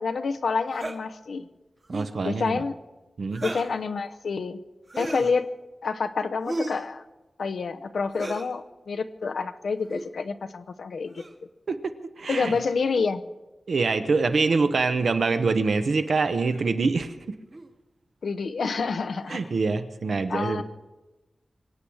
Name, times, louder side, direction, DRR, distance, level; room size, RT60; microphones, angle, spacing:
voice 1, 0.0-1.5 2.2-2.7 3.4-4.6 5.0-5.5 5.8-7.0 7.4-11.2 12.3-13.2 18.2-19.4 20.3-20.6, left 4 dB, 85° left, 9 dB, 0.8 m, -28 dB
sound 1, 0.7-1.0 1.8-2.2 3.3-3.8 4.9-5.4 6.4-6.9 8.1-8.5 9.8-10.1 11.2-11.4 12.3-12.8 14.5-14.6 15.7-15.8 16.5-16.7 17.5-17.7 19.2-19.6, right 2 dB, 35° right, 1.3 m, -36 dB
voice 2, 1.9-2.6 3.2-3.4 11.7-12.6 13.7-17.3 19.3-20.6, right 4 dB, 75° right, 9 dB, 1.0 m, -25 dB
24.0 x 8.7 x 6.3 m, 1.1 s
wide cardioid pair, 105°, 0 cm